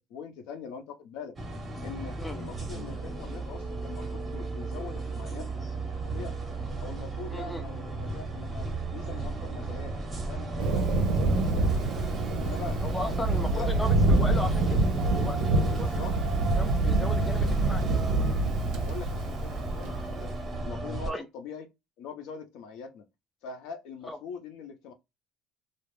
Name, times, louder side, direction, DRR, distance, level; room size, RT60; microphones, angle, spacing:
voice 1, 0.1-1.4 1.8-5.7 6.0-6.4 6.8-9.9 10.3-10.9 11.3-13.7 15.7-16.2 18.6-20.3 20.6-21.7 22.0-23.1 23.4-24.9, left 5 dB, 65° left, 0.6 m, -43 dB
sound 1, 1.4-21.1, right 2 dB, 15° right, 0.7 m, -34 dB
voice 2, 7.3-7.6 12.8-15.9 16.6-17.8 21.1-21.3 24.0-24.2, left 1 dB, 5° left, 0.3 m, -36 dB
Thunder, 10.6-20.2, right 2 dB, 60° right, 0.5 m, -26 dB
2.3 x 2.0 x 3.1 m
cardioid pair, 165°, 0 cm